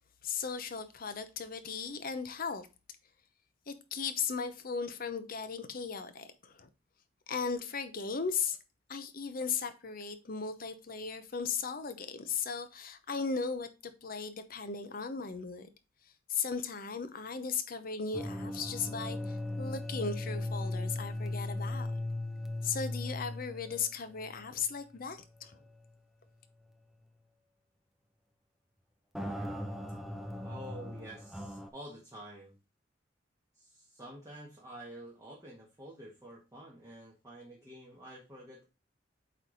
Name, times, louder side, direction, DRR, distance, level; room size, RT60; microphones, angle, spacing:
voice 1, 0.2-2.7 3.7-6.7 7.3-8.6 8.9-15.7 16.3-21.9 22.6-25.6, left 5 dB, 50° left, 0.8 m, -37 dB
sound 1, 18.1-24.7 25.0-25.1 25.7-25.8 29.1-31.7, left 1 dB, ahead, 0.8 m, -38 dB
voice 2, 30.4-32.5 33.5-38.7, right 1 dB, 20° right, 1.5 m, -49 dB
8.4 x 3.3 x 4.0 m
head